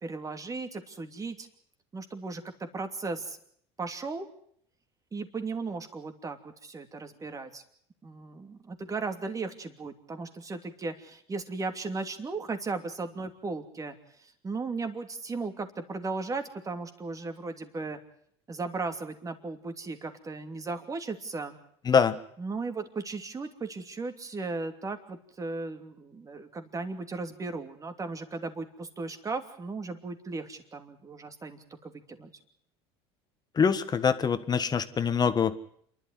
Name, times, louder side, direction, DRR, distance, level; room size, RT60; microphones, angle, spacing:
voice 1, 0.0-1.5 1.9-3.4 3.8-4.3 5.1-7.6 8.0-18.0 18.5-21.6 22.4-32.3, right 3 dB, 25° right, 7 dB, 2.9 m, -36 dB
voice 2, 21.9-22.2 33.6-35.5, left 6 dB, 30° left, 11 dB, 1.6 m, -24 dB
28.0 x 12.0 x 9.5 m, 0.65 s
supercardioid pair, 95°, 14 cm